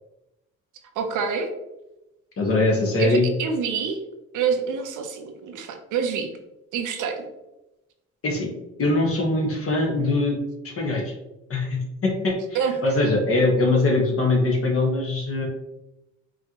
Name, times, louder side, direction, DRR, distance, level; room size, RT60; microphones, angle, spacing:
voice 1, 0.9-1.5 3.0-4.0 4.3-6.3 6.7-7.3 12.5-12.7, right 6 dB, 80° right, 5 dB, 0.8 m, -26 dB
voice 2, 2.4-3.3 8.2-8.5 8.8-10.4 10.6-11.1 11.5-15.5, left 2 dB, 50° left, 0 dB, 1.4 m, -22 dB
4.8 x 3.1 x 3.0 m, 0.95 s
cardioid pair, 90°, 30 cm